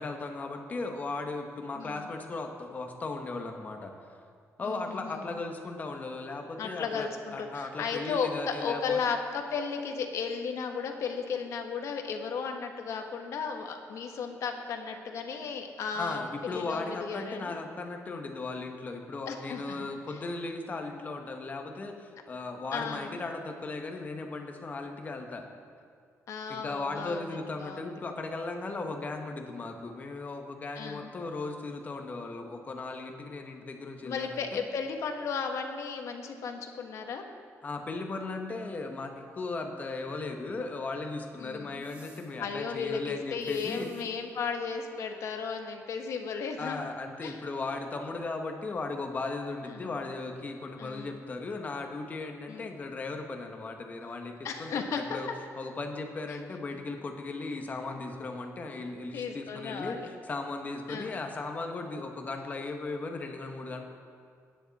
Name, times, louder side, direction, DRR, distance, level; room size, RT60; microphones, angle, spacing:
voice 1, 0.0-4.1 4.6-9.0 15.9-25.5 26.5-34.6 37.6-43.9 46.6-55.3 55.6-63.9, left 3 dB, 30° left, 4 dB, 1.3 m, -37 dB
voice 2, 1.7-2.1 4.6-5.2 6.6-17.6 19.3-19.9 22.7-23.1 26.3-27.2 27.6-27.8 30.7-31.1 34.0-37.2 41.4-41.9 42.4-46.9 47.2-47.4 49.7-49.9 50.8-51.2 52.5-52.7 54.4-55.2 59.1-60.0 60.9-61.2, left 5 dB, 65° left, 4 dB, 1.4 m, -35 dB
sound 1, 41.8-42.3 43.4-44.0, right 2 dB, 25° right, 2.1 m, -56 dB
21.0 x 10.0 x 4.2 m, 2.2 s
cardioid pair, 160°, 6 cm